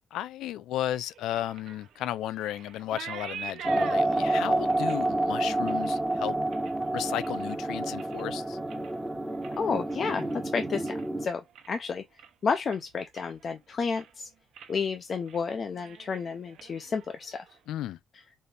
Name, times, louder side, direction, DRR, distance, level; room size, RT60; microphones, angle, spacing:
voice 1, 0.1-6.4 6.9-8.6 17.7-18.0, left 12 dB, 85° left, 0.4 m, -34 dB
sound 1, 0.9-7.5 7.9-8.4 8.6-11.1 11.4-11.9 12.2-12.3 12.7-13.5 13.8-14.2 14.5-14.8 15.1-15.4 15.7-17.6, right 8 dB, 80° right, 0.9 m, -46 dB
sound 2, 3.6-11.3, right 2 dB, 10° right, 0.8 m, -29 dB
voice 2, 9.6-11.4 11.7-12.0 12.4-14.3 14.7-17.5, left 5 dB, 50° left, 0.6 m, -31 dB
4.2 x 2.6 x 3.4 m
cardioid pair, 90°, 0 cm